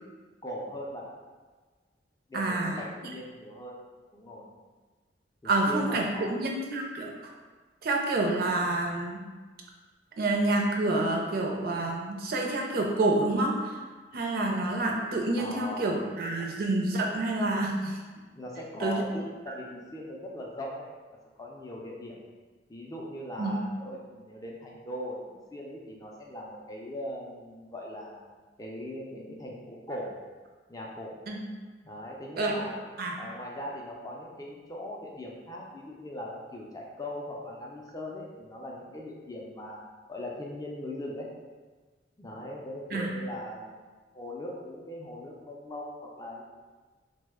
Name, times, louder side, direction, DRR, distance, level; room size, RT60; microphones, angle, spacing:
voice 1, 0.4-1.1 2.3-3.7 4.1-4.4 5.7-6.4 15.4-16.1 16.4-16.5 18.4-20.9 21.4-22.2 22.7-28.2 28.6-30.1 30.7-31.2 31.8-32.8 33.2-39.8 40.1-41.3 42.2-43.7 44.1-46.4, left 1 dB, 20° left, -2 dB, 0.3 m, -40 dB
voice 2, 2.3-2.8 5.4-6.0 6.3-7.1 7.8-9.2 10.2-13.8 14.1-18.0 18.8-19.0 19.5-19.6 23.4-23.5 31.3-31.4 32.4-32.6 33.0-33.2 42.9-43.1, right 2 dB, 55° right, 0 dB, 0.4 m, -28 dB
3.0 x 2.0 x 3.4 m, 1.4 s
head